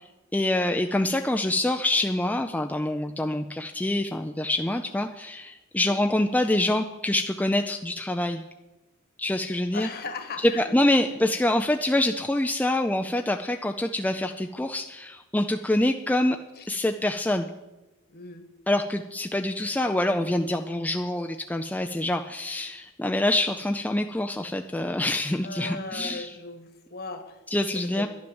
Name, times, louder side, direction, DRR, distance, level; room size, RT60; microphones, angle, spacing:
voice 1, 0.3-8.4 9.2-9.9 10.4-16.4 16.7-17.5 18.7-26.3 27.5-28.1, left 1 dB, 5° left, 5 dB, 0.4 m, -26 dB
voice 2, 9.7-10.7 11.0-11.2 16.5-16.7 18.1-18.4 25.4-27.4 27.9-28.1, left 3 dB, 45° left, 8 dB, 1.5 m, -38 dB
11.0 x 10.5 x 7.0 m, 1.0 s
head